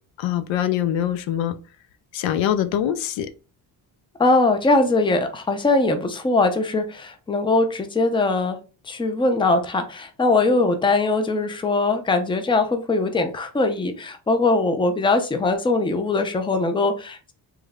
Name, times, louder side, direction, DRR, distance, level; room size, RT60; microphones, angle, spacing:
voice 1, 0.2-1.5 2.1-3.3, left 10 dB, 80° left, 0.6 m, -23 dB
voice 2, 4.2-8.6 8.8-17.3, left 3 dB, 10° left, 0.5 m, -21 dB
3.1 x 2.3 x 3.5 m
cardioid pair, 90°, 45 cm